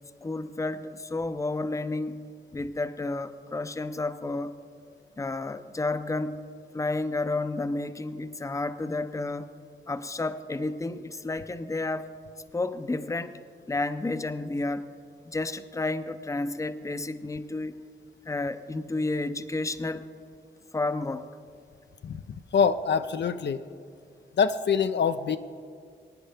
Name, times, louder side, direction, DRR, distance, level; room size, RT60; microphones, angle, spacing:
voice 1, 0.2-4.5 5.2-9.5 9.9-12.1 12.5-13.4 13.7-14.9 15.2-17.8 18.2-20.1 20.7-21.3, left 2 dB, 15° left, 11 dB, 0.5 m, -31 dB
voice 2, 22.5-23.6 24.4-25.4, left 6 dB, 65° left, 10 dB, 0.5 m, -24 dB
21.5 x 10.0 x 3.4 m, 2.2 s
cardioid pair, 75°, 19 cm